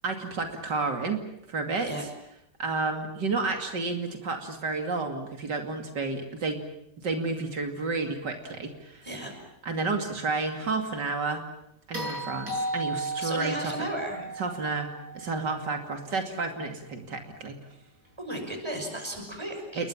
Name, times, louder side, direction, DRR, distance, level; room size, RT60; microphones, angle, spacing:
voice 1, 0.0-1.2 1.5-1.9 2.6-6.6 7.0-9.1 9.6-11.4 11.9-13.7 14.4-14.9 15.1-17.5 19.8-19.9, right 3 dB, 90° right, 4 dB, 3.2 m, -31 dB
voice 2, 9.0-9.4 13.2-14.3 18.2-19.9, right 1 dB, 15° right, 5 dB, 6.0 m, -35 dB
sound 1, 11.9-16.2 18.4-18.5, right 2 dB, 55° right, 7.3 m, -35 dB
28.5 x 22.0 x 7.3 m, 0.80 s
omnidirectional pair, 1.8 m